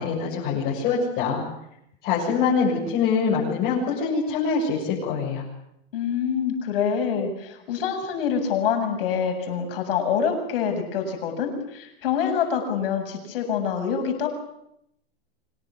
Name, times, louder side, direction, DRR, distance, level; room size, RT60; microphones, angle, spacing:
voice 1, 0.0-1.4 2.0-5.4, left 5 dB, 30° left, -5 dB, 7.6 m, -24 dB
voice 2, 5.9-14.3, left 7 dB, 60° left, 5 dB, 7.7 m, -26 dB
25.5 x 20.0 x 9.8 m, 0.79 s
supercardioid pair, 165°, 32 cm